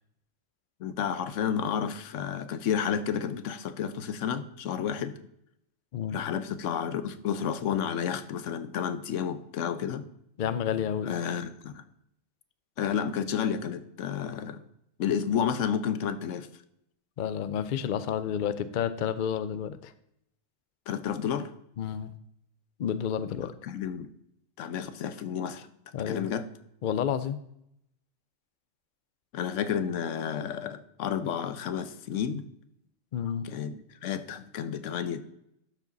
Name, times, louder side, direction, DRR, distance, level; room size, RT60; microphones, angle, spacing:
voice 1, 0.8-5.1 6.1-10.0 11.0-11.8 12.8-14.6 15.0-16.5 20.9-21.5 23.6-24.1 24.6-25.7 26.1-26.5 29.3-32.5 33.4-35.2, left 8 dB, 75° left, 12 dB, 1.0 m, -31 dB
voice 2, 10.4-11.1 17.2-19.9 21.8-22.1 22.8-23.5 25.9-26.3 26.8-27.4 33.1-33.5, left 8 dB, 60° left, 13 dB, 0.5 m, -30 dB
12.0 x 5.0 x 4.0 m, 0.76 s
omnidirectional pair, 1.3 m